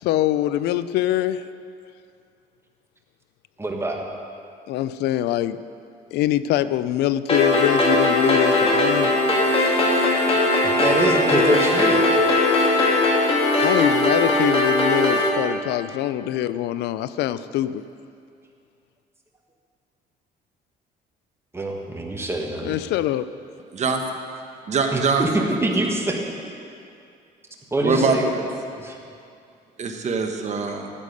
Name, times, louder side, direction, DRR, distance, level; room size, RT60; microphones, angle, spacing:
voice 1, 0.0-1.5 4.7-5.6 6.1-9.1 13.6-17.8 22.6-23.3, left 13 dB, 80° left, 14 dB, 0.4 m, -23 dB
voice 2, 3.6-4.0 10.6-12.2 21.5-22.8 24.9-26.2 27.7-28.5 28.8-29.0, right 1 dB, 15° right, 1 dB, 1.5 m, -24 dB
sound 1, 7.3-15.3, left 2 dB, 35° left, 2.1 m, -19 dB
voice 3, 23.7-24.1 24.7-25.2 25.8-25.9 27.8-28.4 29.8-30.9, right 4 dB, 45° right, 4 dB, 1.2 m, -23 dB
12.5 x 8.3 x 5.2 m, 2.4 s
cardioid pair, 110°, 17 cm